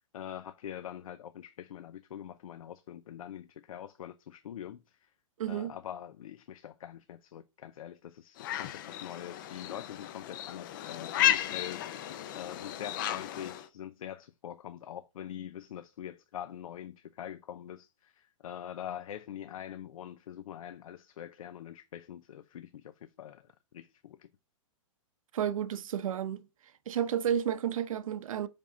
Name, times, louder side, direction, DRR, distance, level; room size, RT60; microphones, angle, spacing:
voice 1, 0.1-5.1 5.5-11.9 12.3-23.5 23.7-24.3, left 10 dB, 85° left, 0.5 m, -44 dB
voice 2, 5.4-5.8 25.3-26.4 26.9-28.5, right 9 dB, 80° right, 0.7 m, -31 dB
sound 1, 8.4-13.7, left 12 dB, 40° left, 0.5 m, -33 dB
5.3 x 5.2 x 3.7 m
hypercardioid pair, 160°, 17 cm